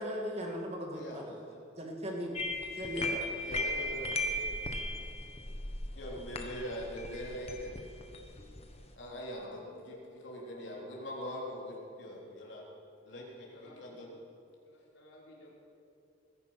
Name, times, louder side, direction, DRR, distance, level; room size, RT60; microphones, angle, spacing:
voice 1, 0.0-1.3 1.8-2.3 2.7-3.1, equal, 30° right, 0 dB, 2.2 m, -37 dB
voice 2, 0.9-1.6 2.9-4.6 6.0-7.8 9.0-10.0 10.2-12.6 13.0-14.1, equal, 65° left, -3 dB, 3.6 m, -42 dB
sound 1, 2.4-8.9, left 1 dB, 30° left, 1.2 m, -37 dB
voice 3, 5.9-6.6 9.3-10.0 10.5-10.8 13.5-14.1 14.6-15.5, left 1 dB, 90° left, -5 dB, 4.6 m, -56 dB
20.5 x 10.5 x 5.9 m, 2.6 s
head